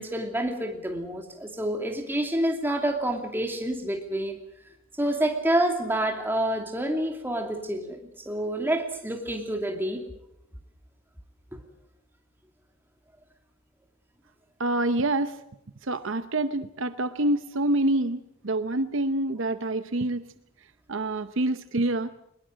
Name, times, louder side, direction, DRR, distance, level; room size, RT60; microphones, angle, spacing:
voice 1, 0.0-4.4 5.0-10.0, right 1 dB, 10° right, 3 dB, 2.6 m, -28 dB
voice 2, 14.6-15.4 15.8-20.2 20.9-22.1, right 2 dB, 60° right, 11 dB, 0.8 m, -26 dB
21.5 x 20.5 x 7.6 m, 0.78 s
head